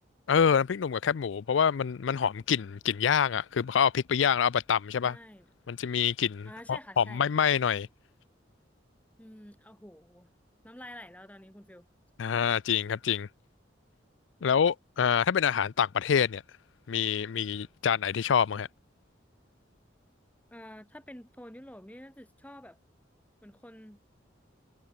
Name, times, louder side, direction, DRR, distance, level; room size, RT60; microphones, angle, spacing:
voice 1, 0.3-5.2 5.7-7.9 12.2-13.3 14.4-16.4 16.9-18.7, left 7 dB, 75° left, 0.4 m, -26 dB
voice 2, 5.0-5.5 6.4-7.2 9.2-10.3 10.6-11.9 20.5-22.8 23.4-24.0, left 1 dB, 10° left, 4.6 m, -48 dB
head